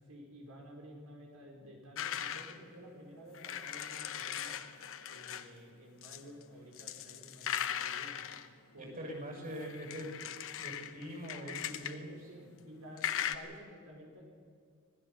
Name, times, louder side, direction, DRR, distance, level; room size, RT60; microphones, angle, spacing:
voice 1, 0.1-4.6 5.1-8.2 8.7-10.1 11.9-14.2, equal, 85° right, 0 dB, 5.2 m, -52 dB
sound 1, 2.0-2.6 3.3-5.5 6.0-6.4 6.7-8.5 9.6-12.0 13.0-13.4, left 9 dB, 65° left, 1.0 m, -39 dB
voice 2, 8.8-10.1 10.6-12.1, equal, 40° right, 1 dB, 6.7 m, -43 dB
25.5 x 17.5 x 6.9 m, 2.1 s
head